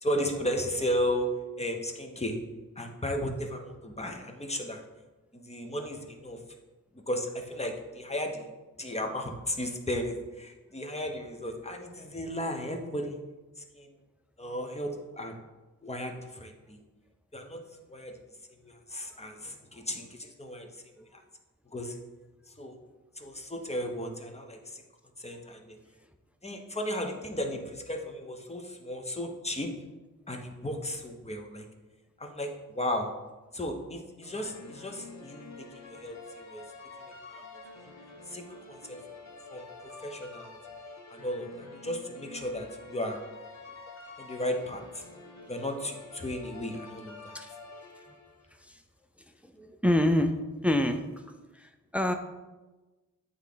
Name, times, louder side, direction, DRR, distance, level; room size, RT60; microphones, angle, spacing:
voice 1, 0.0-1.3 1.6-2.4 2.8-4.8 5.3-6.4 7.1-8.5 8.8-13.2 13.7-13.9 14.4-15.4 15.8-16.8 17.3-17.6 17.9-18.1 18.6-20.7 21.1-21.2 21.7-22.0 22.6-22.8 23.2-24.8 25.2-25.8 26.4-29.7 30.3-31.6 32.2-33.1 33.5-35.5 35.7-36.6 37.0-37.4 37.8-37.9 38.3-39.0 39.5-39.7 40.0-40.6 41.1-43.2 44.2-45.0 45.5-47.4, equal, 20° left, 3 dB, 1.0 m, -35 dB
sound 1, 34.2-48.5, left 3 dB, 50° left, 1.2 m, -48 dB
voice 2, 49.4-50.3 50.6-51.0 51.5-52.1, left 1 dB, 5° right, 7 dB, 0.5 m, -26 dB
8.0 x 3.6 x 3.8 m, 1.2 s
cardioid pair, 60°, 34 cm